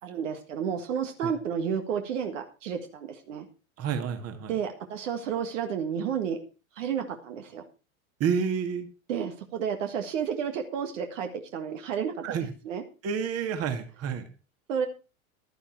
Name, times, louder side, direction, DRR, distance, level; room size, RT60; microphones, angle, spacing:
voice 1, 0.0-3.5 4.5-6.4 6.8-7.6 9.1-12.2 12.7-12.8 14.7-14.9, right 7 dB, 60° right, 5 dB, 1.8 m, -31 dB
voice 2, 3.8-4.5 8.2-8.9 12.2-12.5 13.0-14.3, right 7 dB, 35° right, 7 dB, 2.1 m, -29 dB
12.0 x 10.5 x 4.7 m, 0.33 s
figure-of-eight pair, 85°, 42 cm